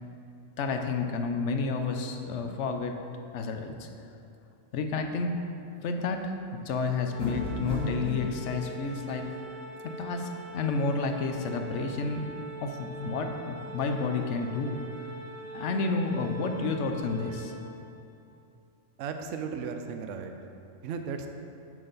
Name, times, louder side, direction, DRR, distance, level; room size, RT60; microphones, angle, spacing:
voice 1, 0.6-3.0 3.3-3.9 4.7-5.5 5.8-6.3 6.6-9.3 9.8-12.2 12.6-14.8 15.5-17.5, left 4 dB, 70° left, 5 dB, 1.0 m, -30 dB
Organ, 7.1-17.9, right 3 dB, 55° left, 2.1 m, -43 dB
sound 1, 7.2-8.3, left 2 dB, 5° left, 1.6 m, -33 dB
voice 2, 19.0-20.3 20.8-21.3, right 6 dB, 75° right, 6 dB, 0.9 m, -35 dB
7.6 x 7.4 x 4.0 m, 2.6 s
omnidirectional pair, 1.3 m